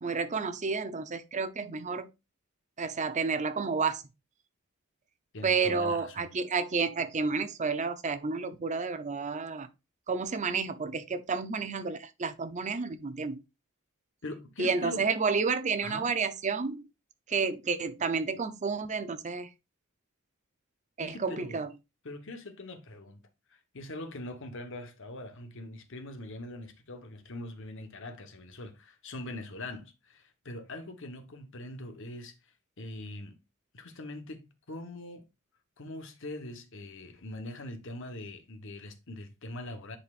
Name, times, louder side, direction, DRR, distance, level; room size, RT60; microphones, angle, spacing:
voice 1, 0.0-2.1 2.8-4.0 5.4-9.7 10.1-13.4 14.6-16.8 17.3-19.5 21.0-21.7, right 4 dB, 35° right, 0.6 m, -30 dB
voice 2, 5.3-6.3 14.2-15.1 15.8-16.1 21.0-21.6 22.0-33.4 33.7-35.2 35.8-40.0, left 1 dB, 60° left, 1.2 m, -42 dB
10.5 x 4.3 x 2.5 m
head